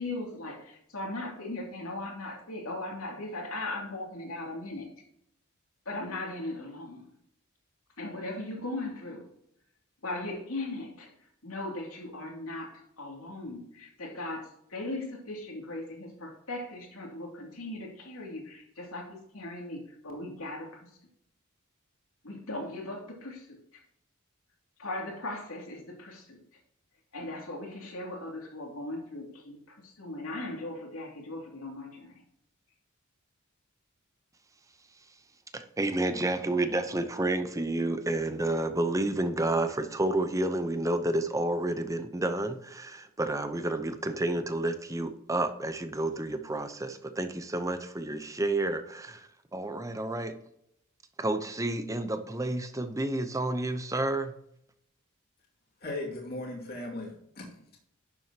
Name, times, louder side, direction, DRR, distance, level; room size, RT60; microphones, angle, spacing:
voice 1, 0.0-4.9 5.9-7.1 8.0-9.3 10.0-11.1 11.4-21.0 22.2-23.8 24.8-26.4 27.1-32.2, left 2 dB, 80° left, 2.6 m, -38 dB
voice 2, 35.5-50.3 51.2-54.3, right 2 dB, 15° right, 0.7 m, -30 dB
voice 3, 55.8-57.8, left 2 dB, 45° left, 2.3 m, -38 dB
11.0 x 7.6 x 2.9 m
head